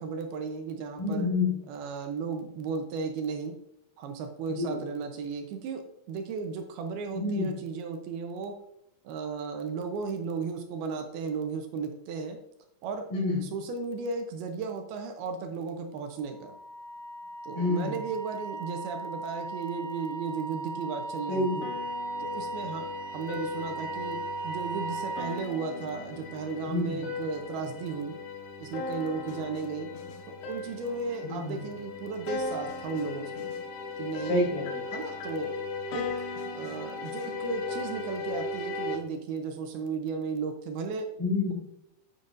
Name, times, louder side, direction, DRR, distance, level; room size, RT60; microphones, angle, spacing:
voice 1, 0.0-1.3 1.7-3.6 4.0-8.6 9.0-12.4 12.8-13.1 13.4-16.6 17.4-21.7 22.2-28.2 28.6-29.9 30.3-33.5 34.0-34.4 34.9-35.5 35.9-36.1 36.5-41.1, right 5 dB, 75° right, 5 dB, 2.6 m, -35 dB
voice 2, 1.0-1.6 4.5-4.8 7.1-7.5 13.1-13.4 17.5-17.9 21.3-21.7 26.7-27.0 31.2-31.6 34.3-34.8 41.2-41.5, left 2 dB, 55° left, -5 dB, 5.0 m, -28 dB
Wind instrument woodwind instrument, 16.0-25.4, right 3 dB, 40° right, 3.1 m, -38 dB
sound 1, 21.6-39.0, left 4 dB, 90° left, 3.3 m, -37 dB
9.4 x 8.3 x 2.6 m, 0.80 s
omnidirectional pair, 4.6 m